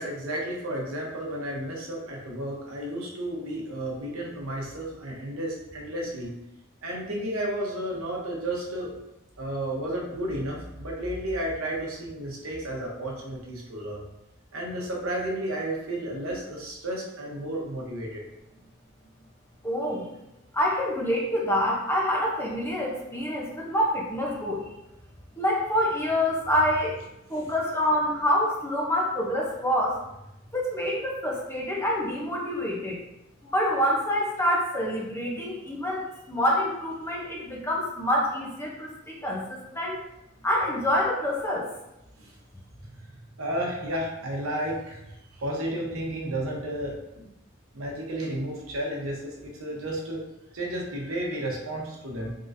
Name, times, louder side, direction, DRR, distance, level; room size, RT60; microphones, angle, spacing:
voice 1, 0.0-6.3 6.8-8.9 9.4-14.1 14.5-18.2 42.2-42.3 42.8-45.0 45.3-47.3 47.7-50.2 50.5-52.3, right 1 dB, 75° right, -2 dB, 1.0 m, -32 dB
voice 2, 19.6-20.1 20.5-24.7 25.4-27.0 27.3-29.9 30.5-33.0 33.4-40.0 40.4-41.7, equal, 10° left, -3 dB, 0.7 m, -26 dB
3.7 x 3.7 x 2.6 m, 0.89 s
head